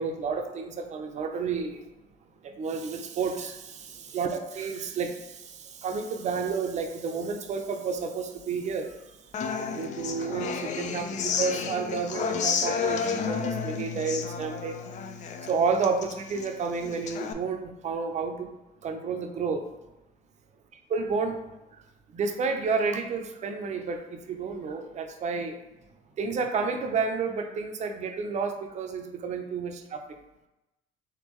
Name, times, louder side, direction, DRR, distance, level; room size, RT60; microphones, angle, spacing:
voice 1, 0.0-1.9 2.4-9.2 9.5-14.7 15.4-18.5 18.8-19.6 20.9-21.8 22.1-25.5 26.2-30.0, right 5 dB, 45° right, 5 dB, 0.6 m, -31 dB
Human voice / Acoustic guitar, 9.3-17.3, left 6 dB, 45° left, 0.4 m, -32 dB
3.6 x 3.3 x 3.0 m, 0.96 s
cardioid pair, 110°, 17 cm